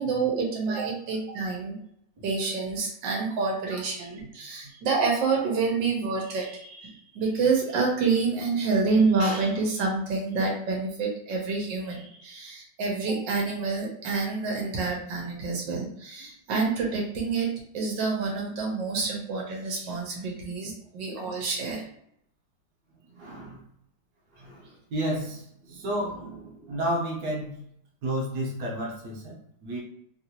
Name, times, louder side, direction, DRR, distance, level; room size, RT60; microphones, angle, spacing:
voice 1, 0.0-1.8 2.2-17.5 17.7-21.8, right 4 dB, 90° right, -1 dB, 1.5 m, -28 dB
voice 2, 23.1-23.6 24.4-27.6 28.0-29.8, right 1 dB, 65° right, -2 dB, 1.4 m, -32 dB
3.4 x 2.6 x 2.8 m, 0.71 s
omnidirectional pair, 1.9 m